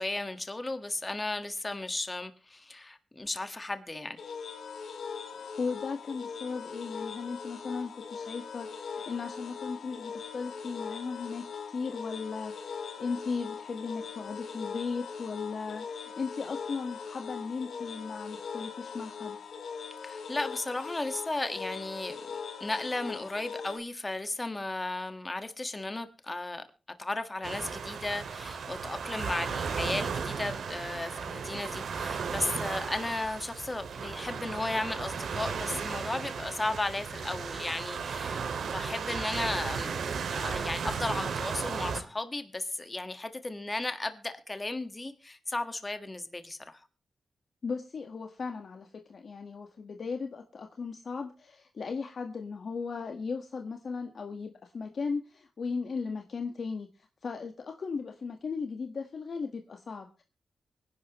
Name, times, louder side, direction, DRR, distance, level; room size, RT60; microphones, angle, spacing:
voice 1, 0.0-4.2 20.0-26.6 27.0-40.0 40.3-46.9, left 2 dB, 20° left, 1.6 m, -35 dB
sound 1, 4.2-23.8, left 6 dB, 80° left, 2.4 m, -41 dB
voice 2, 5.3-19.4 47.6-60.2, left 4 dB, 55° left, 1.4 m, -37 dB
sound 2, 27.4-42.0, right 6 dB, 80° right, 2.2 m, -35 dB
24.5 x 11.0 x 3.1 m
wide cardioid pair, 120°, 0 cm